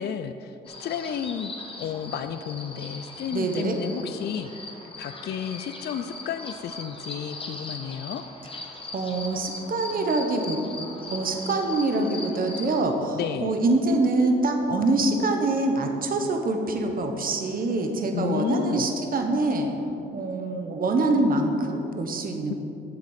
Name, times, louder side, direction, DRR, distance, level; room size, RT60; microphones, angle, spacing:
voice 1, 0.0-8.2 13.1-13.6 18.1-18.9 22.5-22.6, left 8 dB, 55° left, 10 dB, 0.4 m, -32 dB
sound 1, 0.7-12.8, left 3 dB, 25° left, 1.3 m, -40 dB
voice 2, 3.3-3.8 8.9-10.6 11.1-19.7 20.1-22.5, right 2 dB, 45° right, 4 dB, 1.1 m, -25 dB
7.7 x 7.5 x 5.7 m, 2.8 s
cardioid pair, 90°, 20 cm